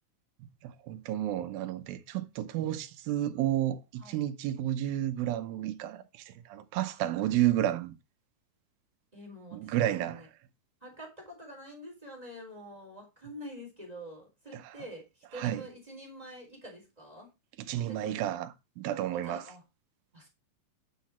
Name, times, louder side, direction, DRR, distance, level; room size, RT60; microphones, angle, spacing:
voice 1, 0.4-7.9 9.5-10.3 14.5-14.7 15.3-15.6 17.6-19.4, right 12 dB, 90° right, 2.6 m, -31 dB
voice 2, 9.1-9.7 10.0-10.3 10.8-17.3 17.9-18.2 19.1-19.6 20.1-20.3, equal, 10° right, 3.5 m, -46 dB
9.5 x 5.9 x 4.3 m
omnidirectional pair, 4.1 m